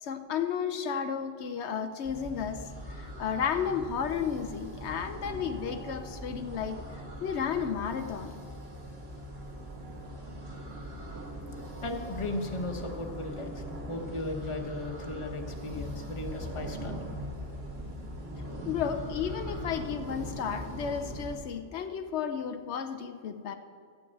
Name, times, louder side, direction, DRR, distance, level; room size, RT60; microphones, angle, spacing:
voice 1, 0.0-6.8 7.2-8.3 18.7-23.5, left 7 dB, 80° left, 8 dB, 0.9 m, -33 dB
sound 1, 2.0-21.4, equal, 65° right, 2.0 m, -41 dB
voice 2, 11.8-17.0, left 2 dB, 30° left, 3 dB, 1.1 m, -36 dB
13.0 x 5.4 x 8.4 m, 2.2 s
omnidirectional pair, 1.1 m